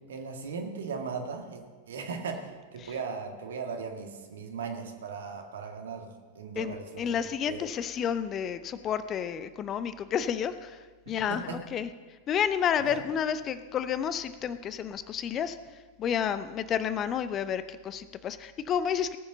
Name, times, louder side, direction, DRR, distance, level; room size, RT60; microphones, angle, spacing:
voice 1, 0.1-1.6 1.9-6.1 6.4-7.6 11.1-11.6 12.8-13.0, right 5 dB, 65° right, 3 dB, 1.9 m, -38 dB
voice 2, 6.6-11.9 12.3-15.6 16.0-19.2, left 8 dB, 30° left, 13 dB, 0.6 m, -30 dB
19.0 x 7.2 x 6.6 m, 1.4 s
figure-of-eight pair, 90°, 0 cm